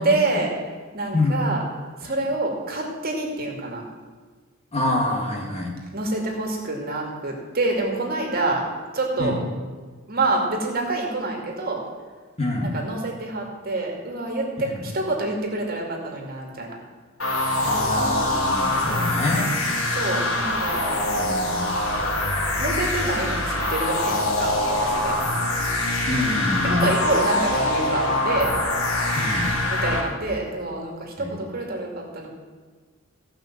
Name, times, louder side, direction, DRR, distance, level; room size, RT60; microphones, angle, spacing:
voice 1, 0.0-0.5 0.9-1.6 2.0-3.8 5.9-8.6 8.9-9.4 10.1-11.8 12.7-16.8 19.9-21.0 21.8-22.0 22.6-25.2 26.6-28.5 29.7-32.3, right 2 dB, 45° right, 0 dB, 2.4 m, -27 dB
voice 2, 1.1-1.4 2.0-2.1 4.7-5.7 9.2-9.4 12.4-12.7 14.6-14.8 17.6-19.5 21.0-21.7 26.1-26.9 29.1-29.5 31.2-31.3, left 2 dB, 30° left, -1 dB, 2.2 m, -26 dB
sound 1, 17.2-30.0, left 1 dB, 75° left, 2.2 m, -24 dB
15.5 x 5.9 x 7.5 m, 1.4 s
head